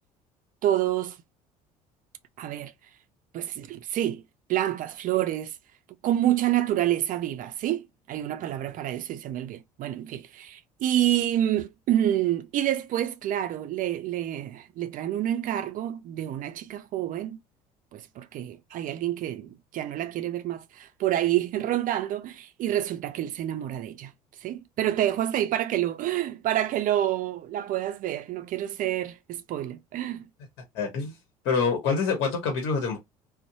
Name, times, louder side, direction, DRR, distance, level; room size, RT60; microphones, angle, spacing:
voice 1, 0.6-1.2 2.4-2.7 3.3-4.2 4.5-5.6 6.0-17.4 17.9-24.1 24.4-30.3, right 12 dB, 45° right, 0.4 m, -28 dB
voice 2, 30.7-31.2 31.4-33.0, left 5 dB, 60° left, 1.0 m, -26 dB
2.6 x 2.0 x 2.5 m
hypercardioid pair, 60°, 19 cm